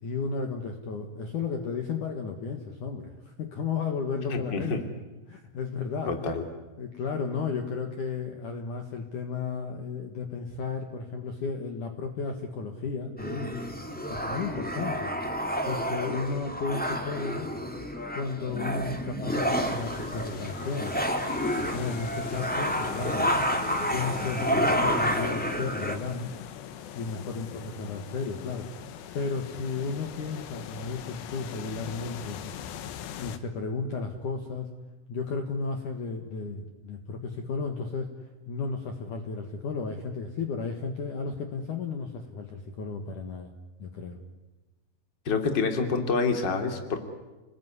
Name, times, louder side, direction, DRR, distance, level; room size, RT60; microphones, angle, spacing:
voice 1, 0.0-4.7 5.3-6.1 6.8-13.6 14.1-15.1 15.6-17.5 18.1-21.0 21.6-23.3 23.9-26.3 26.9-28.7 29.1-32.4 33.2-34.7 35.1-38.1 38.5-43.5 43.8-44.2, left 5 dB, 55° left, 5 dB, 2.8 m, -33 dB
voice 2, 4.3-4.8 6.1-6.4 45.2-47.0, left 4 dB, 30° left, 6 dB, 2.9 m, -27 dB
sound 1, 13.2-26.0, equal, 5° left, 1.3 m, -30 dB
sound 2, 19.4-33.4, left 9 dB, 80° left, 3.5 m, -41 dB
29.5 x 20.0 x 9.7 m, 1.2 s
omnidirectional pair, 4.9 m